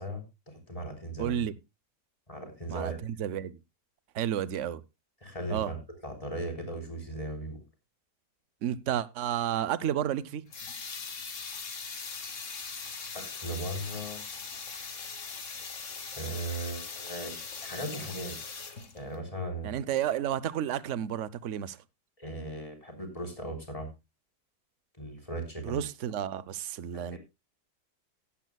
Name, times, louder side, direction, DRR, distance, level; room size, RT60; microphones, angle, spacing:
voice 1, 0.0-1.4 2.3-3.0 5.2-7.6 13.1-14.2 16.1-18.4 18.9-19.8 22.2-23.9 25.0-25.8 26.9-27.2, right 1 dB, 20° left, 3.7 m, -38 dB
voice 2, 1.2-1.5 2.7-3.6 4.1-4.8 5.5-5.7 8.6-10.4 19.6-21.8 25.6-27.2, right 10 dB, 55° right, 0.9 m, -31 dB
sound 1, 10.5-19.2, left 5 dB, 50° left, 1.8 m, -40 dB
16.5 x 10.5 x 2.3 m
omnidirectional pair, 1.8 m